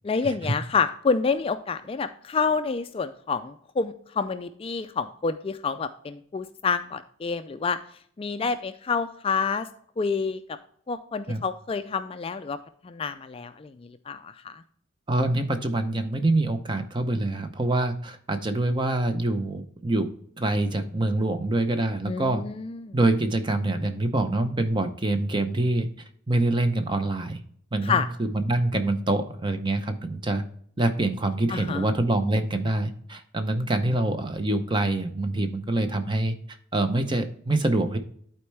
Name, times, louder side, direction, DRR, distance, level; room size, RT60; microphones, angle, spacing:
voice 1, 0.0-7.8 8.2-9.7 10.0-10.4 10.9-12.6 12.8-14.6 22.1-23.0 27.8-28.1 31.5-31.9, left 5 dB, 30° left, 10 dB, 0.3 m, -28 dB
voice 2, 15.1-20.1 20.4-22.4 22.9-25.9 26.3-27.4 27.7-30.4 30.8-36.3 36.7-38.0, right 2 dB, 25° right, 8 dB, 0.7 m, -25 dB
11.5 x 4.4 x 3.3 m, 0.63 s
head